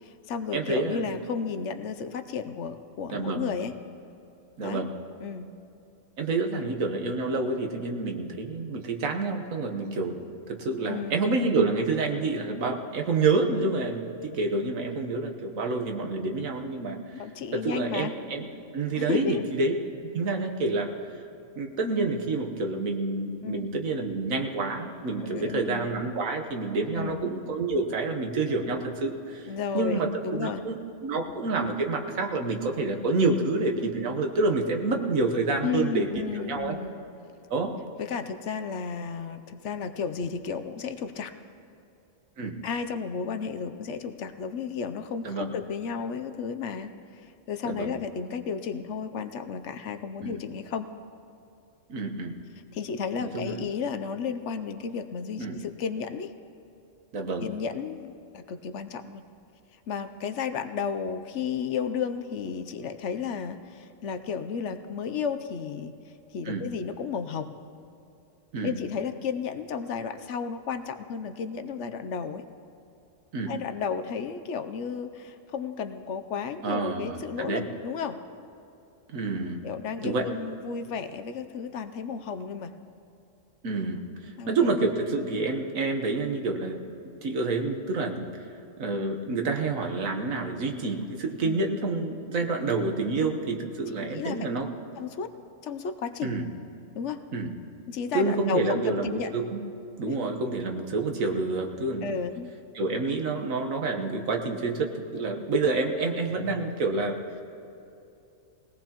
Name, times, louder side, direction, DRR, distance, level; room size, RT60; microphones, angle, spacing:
voice 1, 0.0-3.7 4.6-4.9 5.2-5.5 6.5-6.7 10.9-11.3 17.1-18.1 18.9-19.4 23.4-23.6 25.2-25.9 27.0-27.2 29.5-30.6 35.6-37.0 38.0-41.3 42.6-50.9 52.7-56.3 57.4-59.2 59.9-65.9 66.3-67.5 68.6-72.5 73.5-78.2 79.6-82.7 84.4-84.5 91.4-91.6 94.0-94.5 95.0-95.3 95.6-96.4 96.9-97.2 97.9-99.4 100.1-100.2 102.0-102.5, left 6 dB, 65° left, 9 dB, 0.9 m, -33 dB
voice 2, 0.5-1.1 3.1-3.5 4.6-4.9 6.2-17.0 17.5-18.5 18.7-19.7 20.0-20.9 21.6-30.8 31.0-36.1 36.3-36.8 37.5-37.7 42.4-42.6 45.2-45.5 47.6-48.0 50.2-50.4 51.9-52.3 53.2-53.6 55.4-55.6 57.1-57.5 66.4-66.6 68.5-68.7 73.3-73.5 76.6-77.6 79.1-79.6 80.0-80.2 83.6-86.8 87.2-88.3 88.8-94.7 96.2-96.5 97.3-97.5 98.1-99.6 100.0-102.2 102.7-107.2, right 3 dB, 85° right, 4 dB, 1.5 m, -28 dB
20.5 x 17.5 x 3.0 m, 2.7 s
omnidirectional pair, 1.4 m